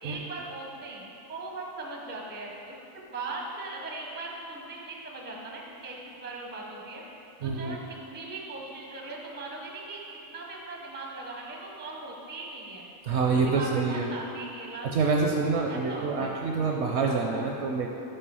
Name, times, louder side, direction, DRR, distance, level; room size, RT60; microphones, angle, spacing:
voice 1, 0.0-2.7 3.1-7.0 7.4-12.9 13.3-15.1 15.7-16.4, right 2 dB, 15° right, -1 dB, 0.4 m, -39 dB
voice 2, 7.4-7.8 13.0-14.1 14.8-17.9, right 4 dB, 65° right, 0 dB, 0.7 m, -26 dB
5.4 x 5.0 x 5.5 m, 2.8 s
omnidirectional pair, 1.5 m